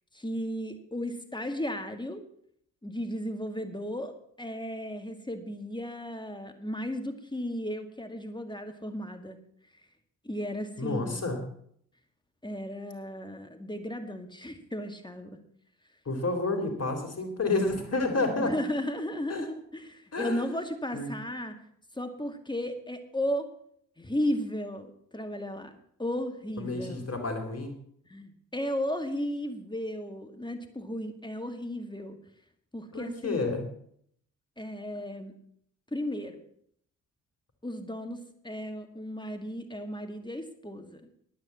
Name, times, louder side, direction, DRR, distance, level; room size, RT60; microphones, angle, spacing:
voice 1, 0.1-2.2 2.8-9.4 10.2-11.3 12.4-15.4 18.4-21.6 21.9-23.5 24.0-27.1 28.1-32.2 32.7-33.4 34.6-35.4 35.9-36.4 37.6-41.0, equal, 10° left, 7 dB, 2.1 m, -35 dB
voice 2, 10.8-11.4 16.1-18.5 19.3-19.5 20.1-20.5 20.9-21.1 26.6-27.7 32.9-33.7, left 3 dB, 40° left, 5 dB, 3.7 m, -30 dB
10.5 x 9.3 x 7.3 m, 0.66 s
hypercardioid pair, 45°, 40 cm